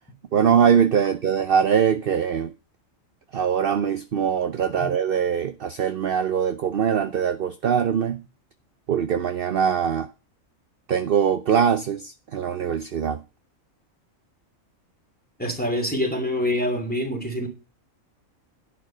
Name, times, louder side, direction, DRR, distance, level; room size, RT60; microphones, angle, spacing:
voice 1, 0.3-2.5 3.3-8.2 8.9-10.1 10.9-13.2, right 7 dB, 50° right, 0.8 m, -22 dB
voice 2, 15.4-17.5, left 1 dB, 5° left, 2.9 m, -26 dB
10.5 x 6.0 x 7.5 m
omnidirectional pair, 1.4 m